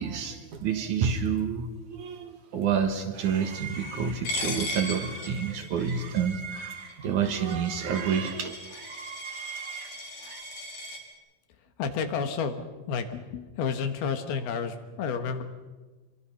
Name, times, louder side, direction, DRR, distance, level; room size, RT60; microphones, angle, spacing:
voice 1, 0.0-8.6, right 7 dB, 60° right, 7 dB, 2.5 m, -29 dB
sound 1, 2.5-10.4, right 5 dB, 45° right, 2.2 m, -42 dB
Coin (dropping), 4.2-11.0, left 2 dB, 60° left, 4.9 m, -38 dB
voice 2, 11.8-15.4, left 6 dB, 80° left, 8 dB, 3.4 m, -31 dB
26.5 x 23.5 x 5.8 m, 1.2 s
omnidirectional pair, 4.3 m